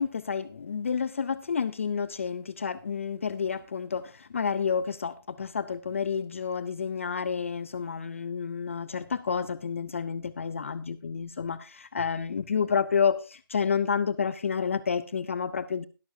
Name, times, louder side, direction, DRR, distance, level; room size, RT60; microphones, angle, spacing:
voice 1, 0.0-15.9, left 6 dB, 35° left, 16 dB, 0.4 m, -30 dB
21.0 x 7.0 x 2.7 m, 0.31 s
hypercardioid pair, 165°, 12 cm